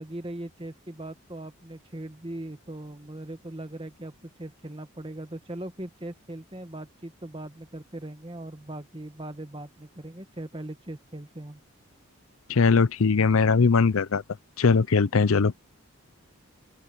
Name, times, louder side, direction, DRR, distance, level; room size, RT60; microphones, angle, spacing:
voice 1, 0.0-11.6, right 1 dB, 25° right, 1.4 m, -39 dB
voice 2, 12.5-14.2 14.6-15.6, left 4 dB, 70° left, 0.6 m, -20 dB
open air
head